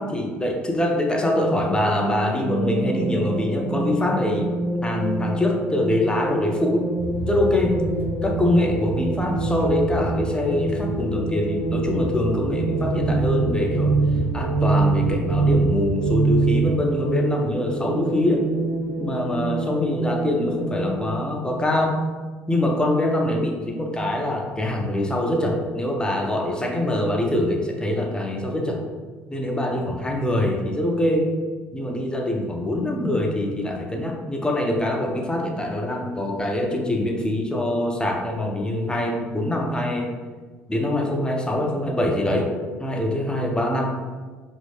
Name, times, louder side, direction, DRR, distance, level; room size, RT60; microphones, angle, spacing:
voice 1, 0.0-4.5 4.8-6.9 7.3-7.8 8.2-13.9 14.3-18.4 19.0-22.0 22.5-28.8 29.3-31.3 31.7-40.1 40.7-42.5 42.8-43.9, left 1 dB, 15° left, 2 dB, 0.5 m, -24 dB
sound 1, 1.9-21.1, right 3 dB, 60° right, 1.0 m, -26 dB
sound 2, 7.0-16.8, right 2 dB, 35° right, 0.5 m, -31 dB
2.7 x 2.6 x 3.4 m, 1.4 s
hypercardioid pair, 60°, 7 cm